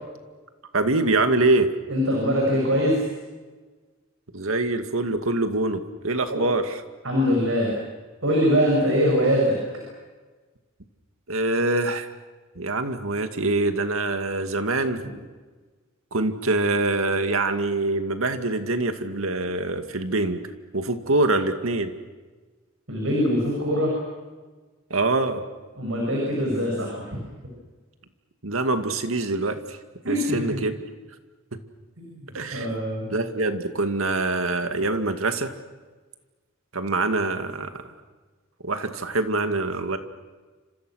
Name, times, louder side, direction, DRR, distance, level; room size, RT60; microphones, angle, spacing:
voice 1, 0.7-1.7 4.3-6.8 11.3-12.1 12.6-15.0 16.1-20.4 20.7-21.9 24.9-25.4 28.4-29.8 30.1-30.7 32.3-32.7 33.1-35.5 36.7-37.9 38.6-40.0, right 2 dB, 85° right, 7 dB, 2.2 m, -24 dB
voice 2, 1.9-3.0 6.3-6.4 7.0-7.7 8.2-9.5 22.9-23.9 25.8-26.9 30.0-30.2 32.0-32.1 32.5-33.1, equal, 70° right, -1 dB, 7.6 m, -22 dB
30.0 x 27.0 x 6.5 m, 1.3 s
head